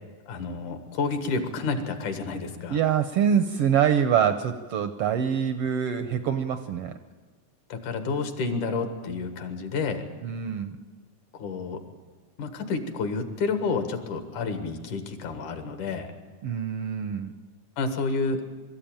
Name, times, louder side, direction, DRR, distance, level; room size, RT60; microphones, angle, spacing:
voice 1, 0.3-2.8 7.7-10.0 11.3-11.8 12.4-16.1 17.8-18.5, left 4 dB, 80° left, 7 dB, 3.1 m, -30 dB
voice 2, 2.7-7.0 10.2-10.8 16.4-17.3, right 8 dB, 80° right, 10 dB, 1.3 m, -25 dB
23.0 x 13.0 x 8.9 m, 1.4 s
omnidirectional pair, 3.5 m